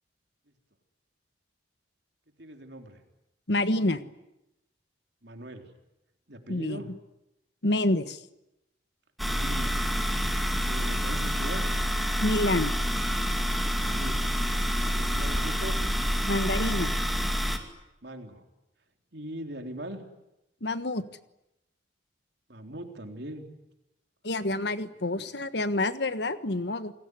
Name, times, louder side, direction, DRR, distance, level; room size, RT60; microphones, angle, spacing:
voice 1, 2.4-3.0 5.2-5.7 6.3-6.9 9.2-9.8 10.6-11.7 13.7-14.3 14.9-15.8 18.0-18.4 19.1-20.0 22.5-23.4 25.1-25.3, right 1 dB, 60° right, 5 dB, 3.8 m, -40 dB
voice 2, 3.5-4.0 6.5-6.8 7.6-8.2 12.2-12.7 16.3-16.9 20.6-21.0 24.2-26.9, left 2 dB, 60° left, 12 dB, 1.4 m, -27 dB
sound 1, 9.2-17.6, equal, ahead, 2.5 m, -28 dB
29.0 x 20.0 x 9.7 m, 0.90 s
head